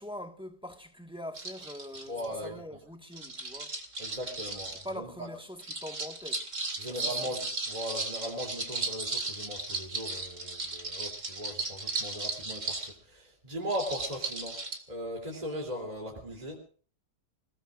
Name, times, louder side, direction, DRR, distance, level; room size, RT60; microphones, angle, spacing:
voice 1, 0.0-3.8 4.8-6.5 6.8-7.1, equal, 5° right, 1.6 m, -43 dB
sound 1, 1.3-2.3 3.1-4.9 5.6-12.9 13.7-14.8, right 3 dB, 50° right, 3.0 m, -36 dB
voice 2, 2.1-2.5 4.0-5.1 6.8-16.6, equal, 20° right, 3.4 m, -38 dB
28.0 x 18.5 x 2.6 m
omnidirectional pair, 1.7 m